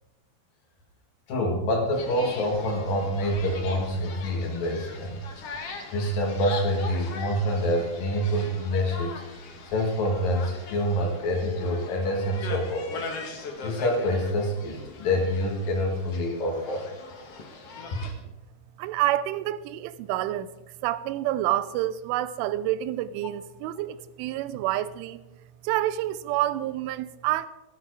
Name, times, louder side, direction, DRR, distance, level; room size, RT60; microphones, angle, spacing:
voice 1, 1.3-5.2 5.9-13.1 13.6-16.8 17.9-18.0, equal, 55° left, 1 dB, 3.3 m, -27 dB
sound 1, 1.9-18.1, left 3 dB, 75° left, 1.4 m, -41 dB
voice 2, 18.8-20.5 20.8-25.2 25.6-27.5, right 14 dB, 90° right, 16 dB, 3.1 m, -28 dB
13.5 x 13.0 x 4.8 m, 1.0 s
omnidirectional pair, 5.5 m